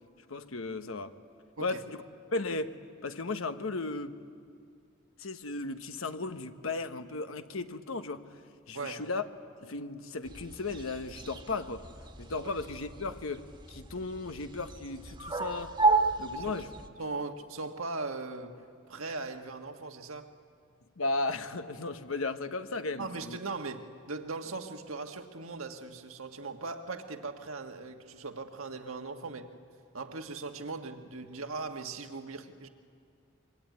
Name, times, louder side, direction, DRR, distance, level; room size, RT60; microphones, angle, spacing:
voice 1, 0.3-1.1 1.6-2.0 2.3-2.8 3.0-4.2 5.2-8.3 8.7-9.3 9.6-11.9 12.2-15.7 16.2-16.7 21.0-23.4, left 3 dB, 70° left, 1.2 m, -35 dB
sound 1, 10.2-16.9, right 3 dB, 20° right, 1.6 m, -33 dB
voice 2, 16.3-16.6 17.0-18.6 18.9-20.3 23.0-29.5 29.9-32.7, right 3 dB, 75° right, 1.6 m, -39 dB
25.5 x 23.5 x 9.4 m
head